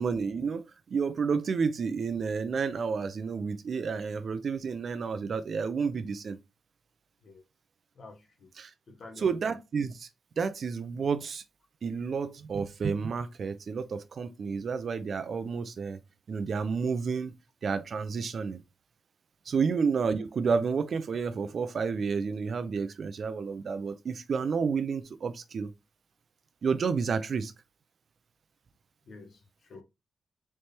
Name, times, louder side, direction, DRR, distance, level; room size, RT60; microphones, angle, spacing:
voice 1, 0.0-6.4 8.6-8.7 9.2-10.1 10.4-11.4 11.8-16.0 16.3-17.4 17.6-18.6 19.5-25.7 26.6-27.5, right 5 dB, 45° right, 0.4 m, -30 dB
voice 2, 7.9-8.5 8.9-9.5 19.5-19.6 29.1-29.8, left 3 dB, 45° left, 1.0 m, -50 dB
4.3 x 3.2 x 3.2 m
wide cardioid pair, 155°, 0 cm